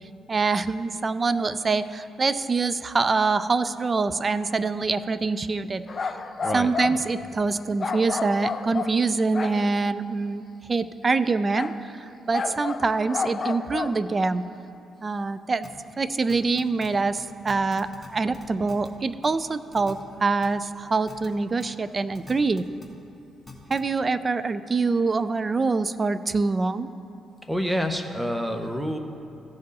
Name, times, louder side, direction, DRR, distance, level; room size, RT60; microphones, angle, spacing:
voice 1, 0.3-6.1 6.5-10.4 10.7-14.5 15.0-15.7 16.0-22.6 23.7-26.9, right 4 dB, 30° right, 14 dB, 0.3 m, -25 dB
sound 1, 5.9-7.0 7.8-9.8 11.6-11.8 12.3-14.0, left 4 dB, 40° left, 0.5 m, -31 dB
sound 2, 15.6-15.7 16.3-16.9 17.2-17.3 17.5-18.1 18.3-18.9 19.2-19.3 19.7-19.9 20.4-20.5 21.1-21.3 21.6-21.7 22.1-22.9 23.5-23.8, left 2 dB, 10° left, 1.5 m, -43 dB
voice 2, 27.5-29.0, equal, 5° right, 5 dB, 0.8 m, -27 dB
15.5 x 5.3 x 4.1 m, 2.8 s
cardioid pair, 90°, 0 cm